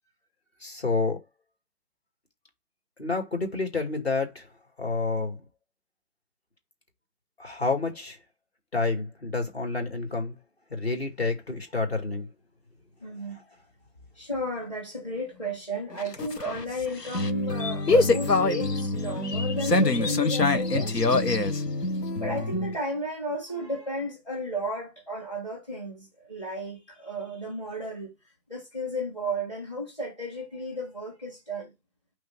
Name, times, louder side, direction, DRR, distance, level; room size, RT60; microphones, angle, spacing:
voice 1, 0.6-1.2 3.0-4.5 4.8-5.4 7.4-8.2 8.7-10.4 10.7-12.3, left 3 dB, 40° left, 2.4 m, -29 dB
voice 2, 13.0-13.4 14.1-21.2 22.1-28.1 28.5-31.7, equal, 20° left, 2.0 m, -33 dB
sound 1, 15.9-22.8, left 3 dB, 75° left, 1.3 m, -25 dB
5.7 x 3.5 x 5.9 m
figure-of-eight pair, 170°, 49 cm